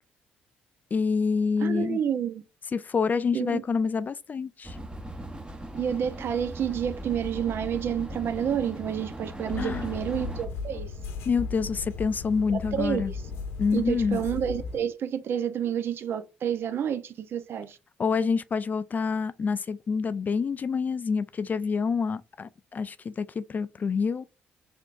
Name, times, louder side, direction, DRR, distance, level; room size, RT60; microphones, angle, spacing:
voice 1, 0.9-2.0 2.7-4.8 9.6-9.9 11.3-13.1 13.6-14.2 18.0-24.3, left 5 dB, 40° left, 0.3 m, -27 dB
voice 2, 1.6-2.4 3.3-3.6 5.7-10.9 12.7-13.2 13.7-17.8, right 9 dB, 60° right, 0.6 m, -29 dB
sound 1, 4.6-10.5, right 1 dB, 20° right, 0.9 m, -38 dB
sound 2, 9.5-14.8, left 4 dB, 75° left, 1.1 m, -36 dB
3.8 x 3.4 x 2.4 m
hypercardioid pair, 50°, 5 cm